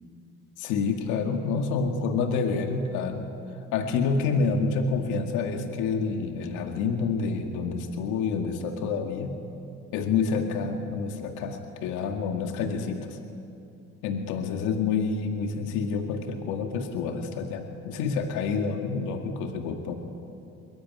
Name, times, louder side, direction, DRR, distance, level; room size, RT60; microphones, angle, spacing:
voice 1, 0.6-3.2 3.7-9.3 9.9-13.2 14.0-19.9, left 5 dB, 85° left, 4 dB, 2.1 m, -28 dB
23.5 x 22.0 x 9.7 m, 2.6 s
supercardioid pair, 90°, 29 cm